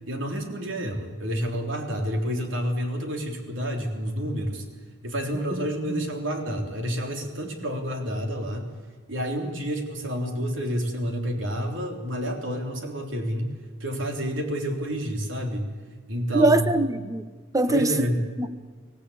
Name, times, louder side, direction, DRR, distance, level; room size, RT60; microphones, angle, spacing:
voice 1, 0.1-4.6 5.0-8.6 9.1-13.5 13.8-15.7 16.1-16.6 17.7-18.2, equal, 65° right, 3.4 m, -29 dB
voice 2, 16.3-17.3 17.5-18.1 18.4-18.5, right 2 dB, 15° right, 0.9 m, -22 dB
24.5 x 17.0 x 8.6 m
head